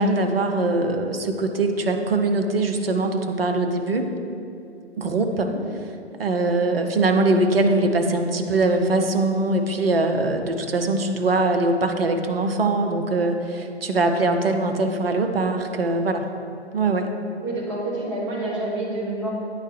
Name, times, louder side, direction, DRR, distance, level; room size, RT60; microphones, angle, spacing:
voice 1, 0.0-4.1 5.0-5.5 6.2-16.3 16.7-17.1, right 2 dB, 60° right, 5 dB, 0.6 m, -22 dB
voice 2, 5.3-5.6 17.4-19.3, right 2 dB, 25° right, -5 dB, 1.4 m, -28 dB
9.1 x 3.2 x 3.3 m, 2.6 s
figure-of-eight pair, 130°, 34 cm